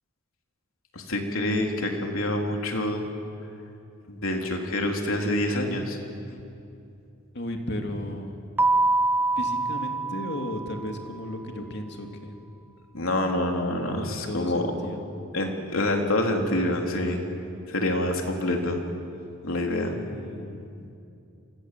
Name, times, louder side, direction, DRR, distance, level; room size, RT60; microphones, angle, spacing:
voice 1, 0.9-3.0 4.1-6.0 12.9-14.7 15.3-17.2 17.7-18.8 19.4-19.9, left 1 dB, 70° left, 2 dB, 3.5 m, -26 dB
voice 2, 7.3-8.5 9.4-12.4 13.9-15.0 19.7-20.7, left 1 dB, 50° left, 3 dB, 2.8 m, -35 dB
Keyboard (musical), 8.6-11.1, right 2 dB, 10° right, 0.6 m, -25 dB
29.0 x 24.5 x 7.7 m, 2.7 s
head